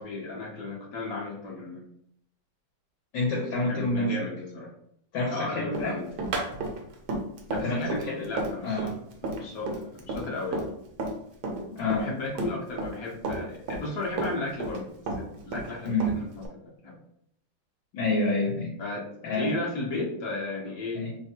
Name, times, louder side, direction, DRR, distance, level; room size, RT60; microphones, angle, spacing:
voice 1, 0.0-1.8 3.7-4.7 5.3-6.1 7.5-8.0 8.2-8.8 9.4-10.7 11.8-17.0 18.8-21.0, left 3 dB, 55° left, -3 dB, 1.1 m, -35 dB
voice 2, 3.1-4.1 5.1-6.0 7.6-8.3 8.6-9.0 11.7-12.1 15.8-16.2 17.9-18.7 19.2-19.6 20.9-21.2, left 2 dB, 75° left, -5 dB, 1.5 m, -28 dB
Run, 5.7-11.2 11.4-13.0 13.2-14.8 15.1-16.5, right 2 dB, 70° right, 1.0 m, -32 dB
3.4 x 2.2 x 2.7 m, 0.71 s
omnidirectional pair, 2.2 m